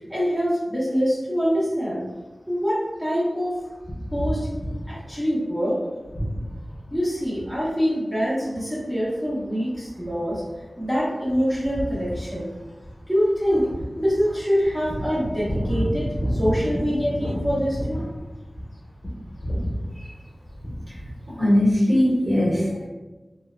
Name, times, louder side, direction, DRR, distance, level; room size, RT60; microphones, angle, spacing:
voice 1, 0.1-2.0 2.5-3.5 4.1-4.5 4.9-5.8 6.9-10.4 10.8-12.5 13.1-13.7 14.0-18.1 20.0-20.1, equal, 5° right, -7 dB, 0.7 m, -24 dB
sound 1, 3.8-5.1 6.0-7.7 8.4-8.6 9.0-18.7 19.0-19.9 20.4-21.1, equal, 30° left, 0.9 m, -31 dB
voice 2, 21.4-22.9, left 1 dB, 40° right, -7 dB, 1.0 m, -20 dB
2.7 x 2.0 x 2.3 m, 1.2 s
wide cardioid pair, 65°, 0 cm